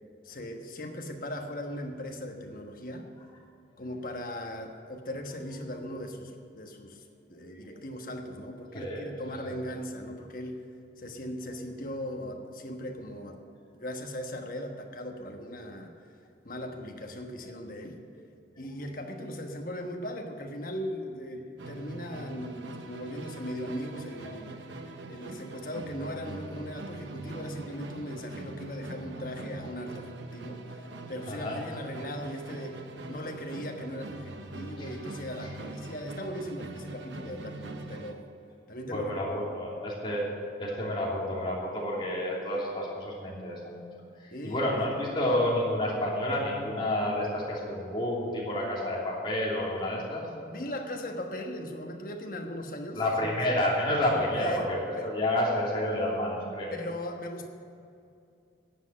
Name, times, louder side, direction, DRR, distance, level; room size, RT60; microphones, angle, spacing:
voice 1, 0.2-3.1 3.8-7.0 7.3-10.7 11.0-13.4 13.7-15.9 16.4-18.0 18.6-24.5 25.1-32.8 33.1-38.2 38.7-39.3 44.3-44.8 50.5-53.6 54.3-54.7 55.0-55.1 56.7-57.5, equal, 50° left, 3 dB, 1.3 m, -38 dB
Musical instrument, 21.6-38.2, right 2 dB, 80° right, 0.9 m, -43 dB
voice 2, 38.9-40.2 40.6-43.9 44.4-50.2 52.9-56.7, left 1 dB, 25° left, -5 dB, 3.0 m, -29 dB
11.0 x 7.8 x 9.7 m, 2.5 s
head